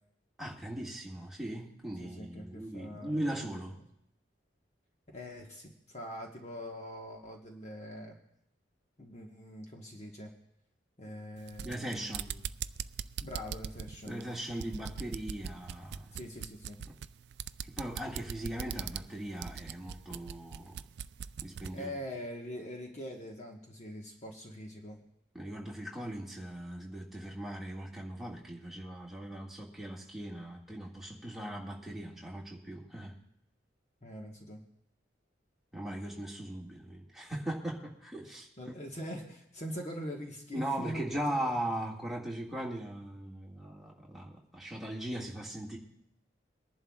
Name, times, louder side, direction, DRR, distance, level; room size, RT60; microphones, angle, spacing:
voice 1, 0.4-3.8 11.6-12.2 14.0-16.2 16.9-17.0 17.7-20.8 21.4-21.9 25.3-33.1 35.7-38.7 40.5-45.8, right 1 dB, ahead, -3 dB, 1.9 m, -39 dB
voice 2, 2.0-3.2 5.1-8.2 9.0-10.3 11.0-12.5 13.2-14.2 16.1-16.8 21.7-25.0 34.0-34.6 38.6-41.0 41.3-41.6, equal, 35° left, 1 dB, 1.3 m, -43 dB
sound 1, 11.4-21.8, right 8 dB, 65° right, 0.3 m, -41 dB
23.5 x 11.0 x 2.4 m, 0.78 s
head